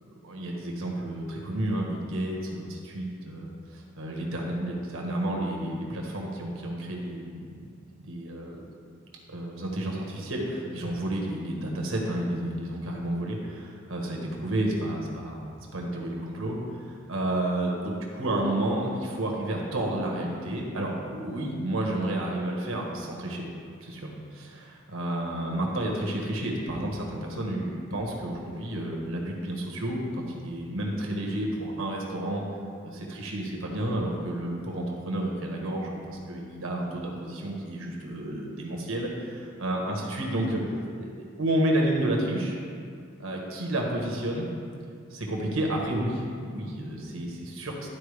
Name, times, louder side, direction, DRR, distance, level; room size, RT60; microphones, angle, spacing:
voice 1, 0.2-7.6 8.0-8.6 9.3-16.6 16.9-23.5 23.8-32.4 32.8-40.6 41.0-41.1 41.4-42.6 43.2-44.5 45.1-47.9, right 1 dB, 80° right, -1 dB, 1.3 m, -31 dB
11.5 x 4.4 x 3.4 m, 2.3 s
head